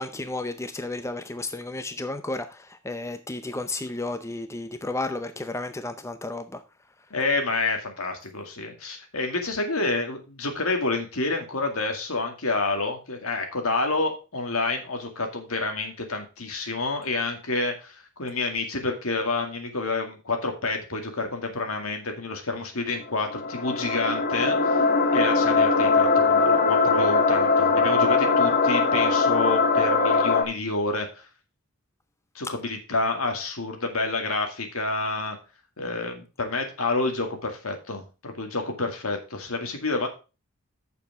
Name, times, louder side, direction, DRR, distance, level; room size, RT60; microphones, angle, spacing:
voice 1, 0.0-6.6, left 2 dB, 15° left, 9 dB, 0.6 m, -32 dB
voice 2, 7.1-24.8 25.1-31.2 32.3-35.4 35.8-40.1, left 3 dB, 80° left, 4 dB, 2.2 m, -28 dB
sound 1, 23.0-30.4, left 4 dB, 50° left, 1.1 m, -21 dB
8.2 x 6.9 x 4.7 m, 0.31 s
head